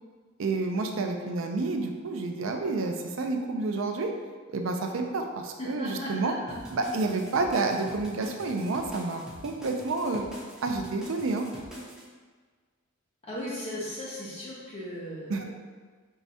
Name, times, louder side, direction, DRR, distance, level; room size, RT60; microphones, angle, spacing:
voice 1, 0.4-4.1 4.5-6.3 6.7-10.3 10.6-11.5 15.3-15.4, right 3 dB, 65° right, 4 dB, 0.4 m, -29 dB
voice 2, 5.6-6.5 13.3-15.4, equal, 30° left, -8 dB, 1.2 m, -37 dB
sound 1, 6.5-12.0, equal, 5° right, 0.6 m, -44 dB
4.6 x 3.2 x 2.7 m, 1.5 s
head